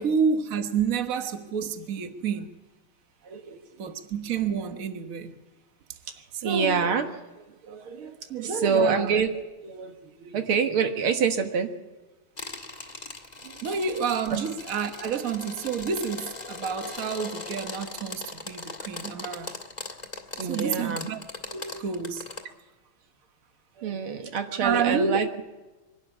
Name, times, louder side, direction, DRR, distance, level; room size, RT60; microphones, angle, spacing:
voice 1, 0.0-2.6 3.8-5.3 6.4-6.9 8.3-9.1 13.6-19.5 20.4-21.2 21.5-22.3 24.6-25.2, right 6 dB, 45° right, 1.5 m, -29 dB
voice 2, 3.2-3.9 6.2-7.1 7.4-11.7 13.4-13.6 14.3-14.4 20.4-21.1 23.8-25.4, right 5 dB, 90° right, 2.4 m, -27 dB
sound 1, 12.4-22.4, left 3 dB, 20° left, 1.8 m, -39 dB
23.5 x 12.5 x 9.8 m
omnidirectional pair, 2.3 m